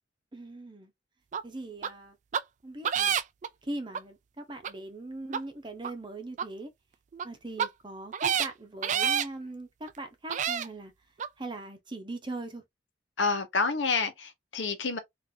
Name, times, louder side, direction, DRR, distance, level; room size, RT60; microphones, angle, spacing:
voice 1, 0.3-0.9 1.4-2.2 2.6-3.2 3.6-6.7 7.2-10.9 11.4-12.6, right 2 dB, 25° right, 0.8 m, -40 dB
sound 1, 1.3-1.4 1.8-1.9 2.3-2.4 2.8-3.5 3.9-4.0 4.6-4.7 5.3-5.4 5.8-5.9 6.4-6.5 7.1-7.2 7.6-7.7 8.1-8.5 8.8-9.3 9.9-10.0 10.3-10.7 11.2-11.3, right 8 dB, 40° right, 0.3 m, -28 dB
voice 2, 13.2-15.0, left 4 dB, 85° left, 0.9 m, -28 dB
3.8 x 2.6 x 2.7 m
head